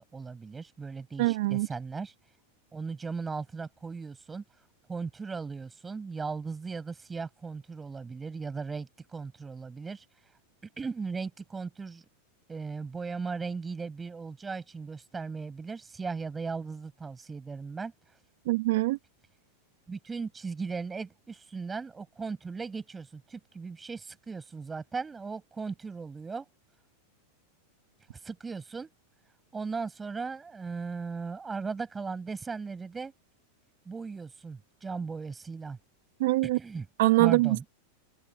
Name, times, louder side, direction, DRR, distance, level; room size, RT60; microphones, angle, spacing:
voice 1, 0.0-2.1 2.7-4.4 4.9-10.1 10.8-12.0 12.5-17.9 19.9-26.5 28.2-28.9 29.5-33.1 33.9-35.8 36.5-36.9 37.2-37.6, right 4 dB, 10° right, 7.1 m, -37 dB
voice 2, 1.2-1.7 18.5-19.0 36.2-36.6 37.0-37.7, right 19 dB, 70° right, 2.0 m, -24 dB
supercardioid pair, 150°, 0 cm